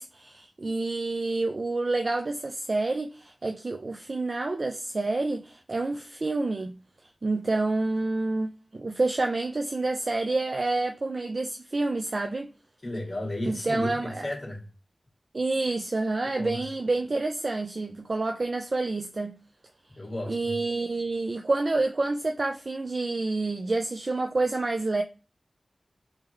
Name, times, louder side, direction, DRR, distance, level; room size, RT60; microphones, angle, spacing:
voice 1, 0.0-6.8 7.2-12.5 13.5-14.3 15.3-19.4 20.3-25.0, right 2 dB, 55° right, 0.4 m, -28 dB
voice 2, 12.8-14.6 16.3-16.6 20.0-20.6, left 1 dB, 40° left, 1.5 m, -33 dB
3.7 x 2.7 x 3.1 m
wide cardioid pair, 75°, 0 cm